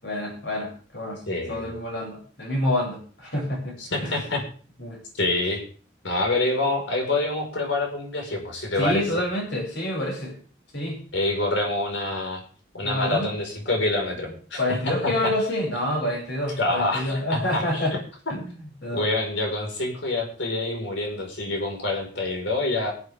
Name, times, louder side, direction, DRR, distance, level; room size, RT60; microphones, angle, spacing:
voice 1, 0.0-4.2 4.8-5.0 8.8-10.4 10.7-11.0 12.8-13.3 14.6-18.0 18.4-19.1, left 1 dB, 65° left, -2 dB, 7.6 m, -28 dB
voice 2, 1.3-1.7 3.8-4.4 5.1-5.6 6.0-9.0 11.1-12.4 12.7-14.6 16.6-17.9 18.9-22.9, left 2 dB, 85° left, 1 dB, 5.4 m, -26 dB
22.5 x 8.7 x 3.8 m, 0.42 s
head